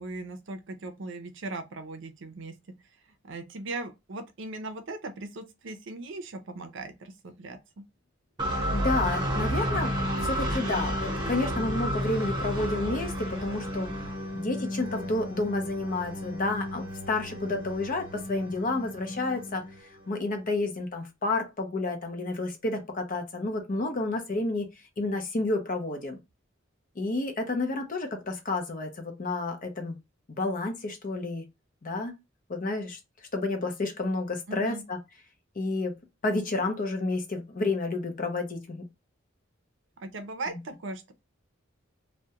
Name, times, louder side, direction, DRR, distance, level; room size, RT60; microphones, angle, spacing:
voice 1, 0.0-2.5 3.2-7.6 34.5-34.8 40.0-41.1, right 2 dB, 65° right, 0.5 m, -38 dB
sound 1, 8.4-20.2, equal, 25° right, 1.0 m, -32 dB
voice 2, 8.7-13.9 14.3-19.6 20.1-24.7 25.0-26.2 27.0-30.0 30.3-31.4 31.8-32.1 32.5-33.0 33.3-35.0 35.6-35.9 36.2-38.8 40.5-40.6, left 2 dB, 45° left, 0.6 m, -30 dB
2.3 x 2.1 x 2.8 m
head